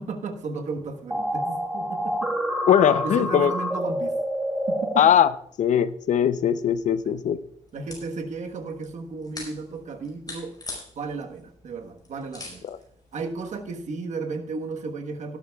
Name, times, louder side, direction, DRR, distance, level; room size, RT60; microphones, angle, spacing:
voice 1, 0.0-2.3 3.0-4.1 4.7-5.1 7.0-7.2 7.7-10.6 11.0-12.7 13.1-15.4, right 4 dB, 80° right, 1.3 m, -34 dB
sound 1, 1.1-5.0, equal, 5° right, 1.5 m, -27 dB
voice 2, 2.7-3.5 5.0-5.3 5.6-7.4, left 9 dB, 85° left, 0.6 m, -20 dB
sound 2, 6.6-13.9, left 2 dB, 35° left, 5.0 m, -45 dB
17.0 x 11.5 x 2.4 m
wide cardioid pair, 120°, 12 cm